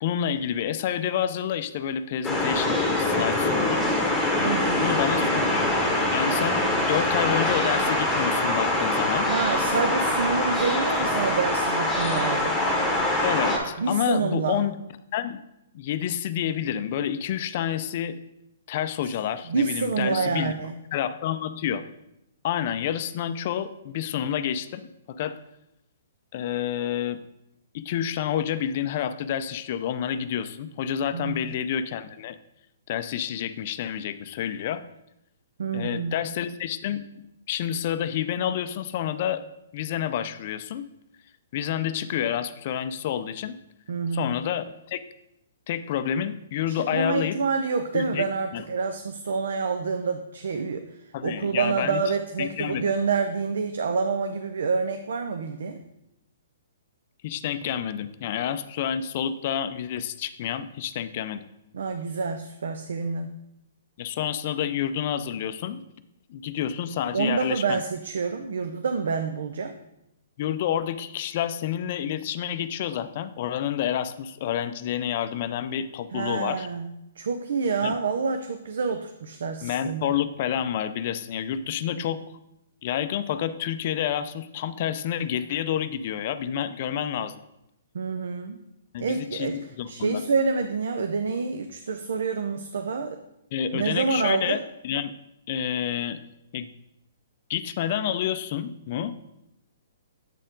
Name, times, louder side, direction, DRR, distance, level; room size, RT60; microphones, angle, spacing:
voice 1, 0.0-3.9 4.8-5.7 6.1-9.3 13.2-14.8 15.1-15.4 15.7-18.1 18.7-20.5 20.9-21.8 22.4-24.8 25.1-25.4 26.3-27.2 27.7-32.4 32.9-34.8 35.7-37.0 37.5-39.4 39.7-40.8 41.5-43.6 44.1-45.0 45.7-47.4 47.9-48.3 48.5-48.6 51.1-52.0 52.4-52.9 57.2-61.4 64.0-65.8 66.3-67.8 70.4-76.7 77.8-77.9 79.6-82.2 82.8-87.4 88.9-90.2 93.5-94.6 94.8-95.1 95.5-96.2 96.5-96.7 97.5-99.1, left 9 dB, 45° left, 12 dB, 0.4 m, -29 dB
sound 1, 2.2-13.6, left 1 dB, 5° left, 1.3 m, -24 dB
voice 2, 4.4-4.9 9.2-12.6 13.8-14.6 19.5-20.8 31.1-31.5 35.6-36.2 43.9-44.3 46.7-55.8 61.7-63.4 67.1-69.7 76.1-80.1 87.9-88.6 89.0-89.6 89.9-93.2 93.7-94.6, right 4 dB, 70° right, 7 dB, 0.5 m, -27 dB
8.1 x 4.3 x 3.8 m, 0.86 s
hypercardioid pair, 140°, 0 cm